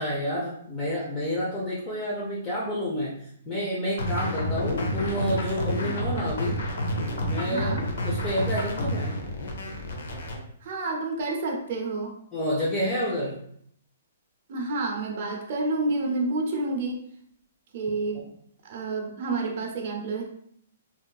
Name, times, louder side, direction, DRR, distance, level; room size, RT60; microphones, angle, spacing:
voice 1, 0.0-3.1 3.5-6.6 7.2-9.1 12.3-13.4 18.1-18.2, equal, 20° left, -8 dB, 0.6 m, -29 dB
sound 1, 4.0-10.4, equal, 70° left, 0.6 m, -29 dB
voice 2, 7.4-7.8 10.6-12.2 14.5-17.0 17.7-18.3 18.6-20.2, right 3 dB, 50° right, 0 dB, 0.6 m, -29 dB
2.8 x 2.4 x 2.3 m, 0.66 s
hypercardioid pair, 155°, 0 cm